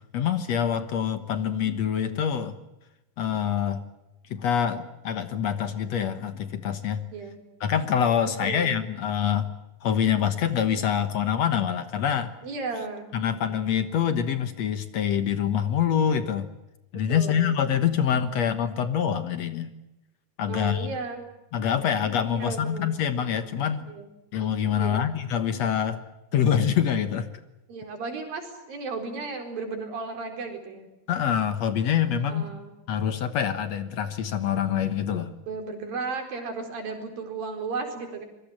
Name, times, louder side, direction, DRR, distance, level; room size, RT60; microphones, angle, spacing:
voice 1, 0.0-2.6 3.2-3.8 4.3-7.0 7.6-9.5 9.8-12.3 13.1-16.5 16.9-19.7 20.4-20.9 21.5-23.9 24.3-26.0 26.3-27.3 31.1-32.5 32.9-35.3, left 8 dB, 60° left, 10 dB, 2.1 m, -25 dB
voice 2, 8.4-8.7 12.4-13.1 17.1-17.6 20.5-21.2 22.3-22.9 23.9-24.1 24.7-25.1 26.3-26.5 27.7-30.9 32.3-32.7 35.5-38.3, right 4 dB, 80° right, 3 dB, 6.2 m, -34 dB
26.0 x 22.0 x 7.4 m, 0.94 s
omnidirectional pair, 4.0 m